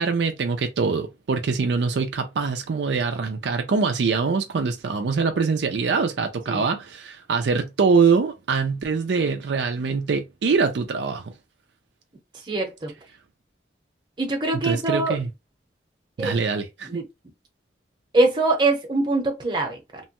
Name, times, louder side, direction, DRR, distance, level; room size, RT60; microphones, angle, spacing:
voice 1, 0.0-11.3 14.5-15.3 16.2-16.9, right 5 dB, 70° right, 0.4 m, -23 dB
voice 2, 12.5-12.9 14.2-15.2 16.2-16.3 16.9-17.0 18.1-20.0, right 2 dB, 25° right, 0.8 m, -23 dB
3.0 x 2.2 x 2.9 m
head